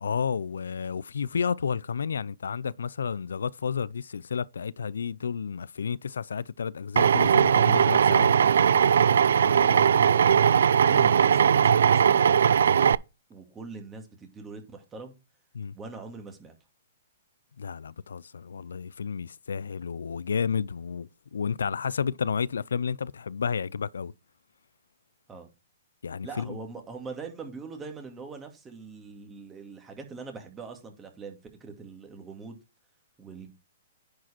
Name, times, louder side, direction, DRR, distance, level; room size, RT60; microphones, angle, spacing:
voice 1, 0.0-8.3 15.5-15.8 17.6-24.1 26.0-26.6, left 6 dB, 80° left, 0.4 m, -31 dB
Drill, 7.0-13.0, right 7 dB, 75° right, 0.3 m, -20 dB
voice 2, 10.8-12.3 13.3-15.1 15.7-16.5 25.3-25.5 26.2-32.6 33.2-33.5, right 4 dB, 15° right, 2.2 m, -42 dB
10.0 x 4.8 x 4.3 m
hypercardioid pair, 130°, 0 cm